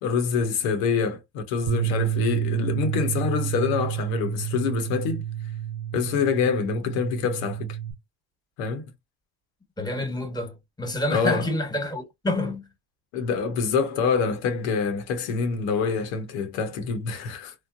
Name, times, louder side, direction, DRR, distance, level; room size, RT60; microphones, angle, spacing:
voice 1, 0.0-5.2 5.9-7.8 8.6-8.8 11.1-11.5 13.1-17.5, left 5 dB, 80° left, 0.8 m, -26 dB
Bass guitar, 1.7-7.9, right 11 dB, 50° right, 0.6 m, -29 dB
voice 2, 9.8-12.7, left 1 dB, 10° left, 1.2 m, -28 dB
2.9 x 2.0 x 2.4 m
hypercardioid pair, 65°, 48 cm